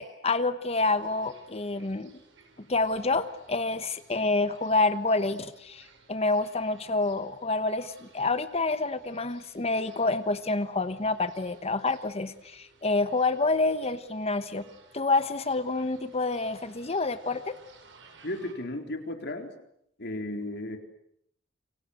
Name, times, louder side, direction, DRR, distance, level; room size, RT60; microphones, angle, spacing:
voice 1, 0.0-2.1 2.7-17.5, left 3 dB, 35° left, 12 dB, 1.1 m, -28 dB
sound 1, 0.7-18.5, right 4 dB, 80° right, 5.6 m, -58 dB
voice 2, 18.2-19.5 20.0-20.8, left 1 dB, 60° left, 5 dB, 4.1 m, -34 dB
28.5 x 25.0 x 8.0 m, 0.74 s
head